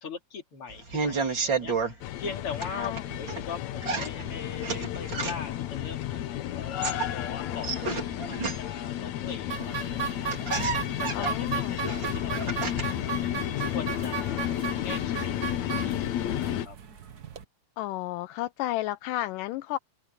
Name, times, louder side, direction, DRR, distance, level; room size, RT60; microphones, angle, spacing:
voice 1, 0.0-14.6 14.8-16.8, left 5 dB, 40° left, 3.8 m, -41 dB
sound 1, 0.7-1.9 2.5-3.4 3.8-5.6 6.6-8.9 9.8-9.9 10.1-13.0 13.4-14.0, right 4 dB, 35° right, 3.4 m, -32 dB
sound 2, 2.0-16.7, left 12 dB, 70° left, 2.0 m, -32 dB
voice 2, 2.6-3.0 11.1-11.8 17.8-19.8, left 16 dB, 85° left, 2.2 m, -32 dB
sound 3, 9.5-17.4, right 7 dB, 90° right, 0.8 m, -36 dB
open air
omnidirectional pair, 3.9 m